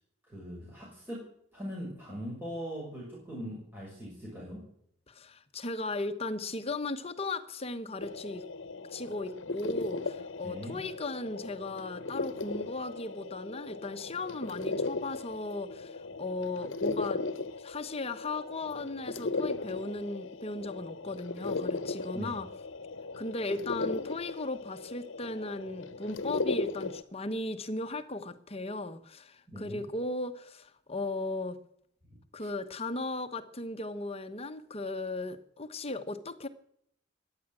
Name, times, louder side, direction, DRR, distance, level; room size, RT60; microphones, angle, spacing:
voice 1, 0.3-1.2 1.5-4.6 10.4-10.8 22.1-22.3 29.5-29.8 32.4-32.5, equal, 10° right, 6.1 m, -40 dB
voice 2, 5.1-8.4 8.9-17.2 17.6-22.5 23.2-31.6 32.3-36.5, left 2 dB, 30° left, 1.1 m, -37 dB
sound 1, 8.0-27.0, left 3 dB, 70° left, 1.0 m, -37 dB
15.0 x 10.5 x 9.0 m
head